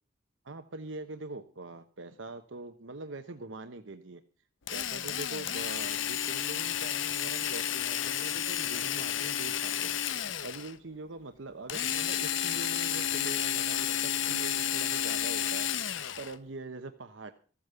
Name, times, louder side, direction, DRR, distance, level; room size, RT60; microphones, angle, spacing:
voice 1, 0.4-4.2 4.7-9.9 10.4-15.7 16.2-17.3, right 3 dB, 85° right, 8 dB, 1.0 m, -43 dB
Drill, 4.7-10.7 11.7-16.4, left 10 dB, 80° left, 0.8 m, -31 dB
14.5 x 8.7 x 6.8 m, 0.39 s
head